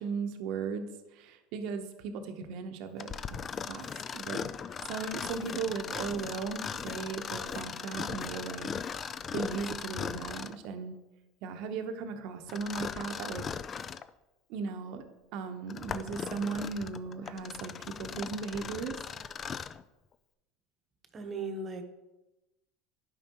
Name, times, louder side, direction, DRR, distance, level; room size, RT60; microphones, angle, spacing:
voice 1, 0.0-3.1 3.7-4.4 4.9-8.7 9.3-10.9 11.4-13.4 14.5-15.0 15.3-19.0, right 5 dB, 65° right, 7 dB, 0.8 m, -37 dB
Mechanisms, 3.0-10.7 12.5-14.1 14.7-14.8 15.5-19.8, left 6 dB, 30° left, 0.3 m, -38 dB
voice 2, 21.1-21.8, right 3 dB, 30° right, 6 dB, 0.9 m, -37 dB
10.5 x 5.1 x 2.9 m, 1.0 s
supercardioid pair, 115°, 0 cm